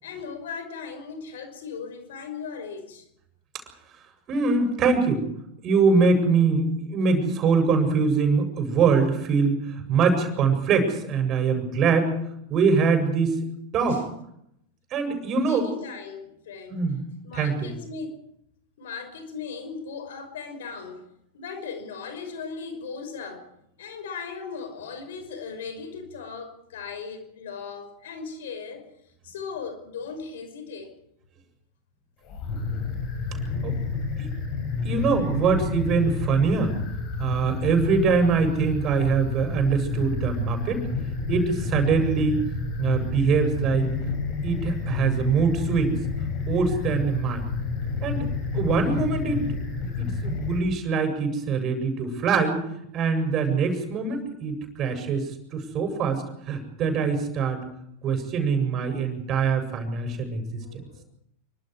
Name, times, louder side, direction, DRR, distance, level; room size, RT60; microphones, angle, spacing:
voice 1, 0.0-3.1 13.9-14.0 15.4-16.9 17.2-18.2 18.8-21.1 21.3-23.5 23.8-28.9 29.2-31.0 34.4-34.6 57.6-57.7 60.6-61.0, left 5 dB, 60° left, 8 dB, 5.7 m, -38 dB
voice 2, 4.3-5.2 5.6-12.1 12.5-13.4 13.7-14.0 14.9-15.7 16.7-17.0 17.3-17.7 33.6-33.7 34.2-34.3 34.8-36.7 37.2-40.8 41.3-42.4 42.8-43.9 44.4-46.0 46.5-47.5 48.0-48.3 48.5-49.4 49.8-52.6 52.9-55.3 55.5-57.6 58.0-60.4, right 5 dB, 30° right, 6 dB, 7.5 m, -23 dB
sound 1, 32.2-50.6, left 4 dB, 40° left, 7.0 m, -30 dB
27.5 x 25.0 x 4.9 m, 0.76 s
figure-of-eight pair, 90°, 0 cm